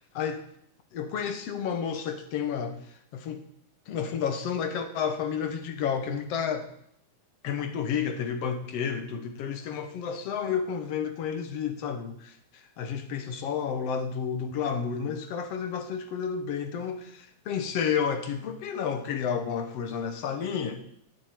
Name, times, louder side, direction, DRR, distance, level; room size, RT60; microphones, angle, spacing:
voice 1, 0.9-3.4 3.9-6.7 7.4-20.8, left 7 dB, 60° left, 7 dB, 2.0 m, -31 dB
12.5 x 6.4 x 9.2 m, 0.71 s
omnidirectional pair, 3.4 m